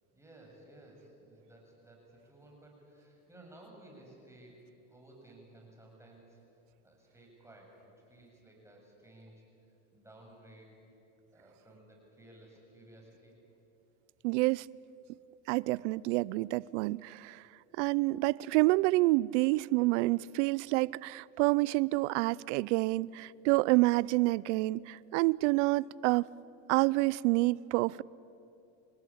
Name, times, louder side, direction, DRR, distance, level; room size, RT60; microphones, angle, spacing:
voice 1, 0.1-6.4 6.8-9.4 9.9-10.8 11.3-13.3, right 1 dB, 10° right, 7.8 m, -56 dB
voice 2, 14.2-14.7 15.5-17.4 17.8-26.3 26.7-28.0, right 21 dB, 75° right, 0.6 m, -28 dB
28.0 x 18.5 x 8.7 m
supercardioid pair, 105°, 36 cm